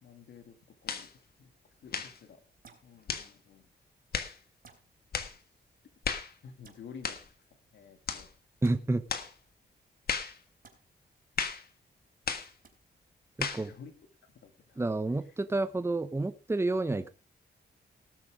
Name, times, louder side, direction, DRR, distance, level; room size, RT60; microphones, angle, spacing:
voice 1, 0.0-0.5 0.8-1.1 1.4-1.5 1.8-1.9 2.2-2.4 2.8-3.6 6.4-7.2 7.7-8.3 13.7-13.9 14.4-14.8, left 6 dB, 90° left, 7 dB, 2.1 m, -50 dB
sound 1, 0.9-1.1 1.9-2.2 3.1-3.3 4.1-4.4 5.1-5.4 6.0-6.3 7.0-7.3 8.1-8.3 9.1-9.3 10.1-10.4 11.4-11.7 12.3-12.5 13.4-13.7, left 6 dB, 60° left, 1.6 m, -34 dB
sound 2, 2.6-2.9 4.6-4.8 6.6-6.8 8.6-8.8 10.6-10.8 12.6-12.7, right 5 dB, 55° right, 3.9 m, -55 dB
voice 2, 8.6-9.0 13.4-13.7 14.8-17.1, right 2 dB, 15° right, 12 dB, 0.9 m, -29 dB
18.5 x 6.8 x 5.0 m, 0.35 s
cardioid pair, 105°, 18 cm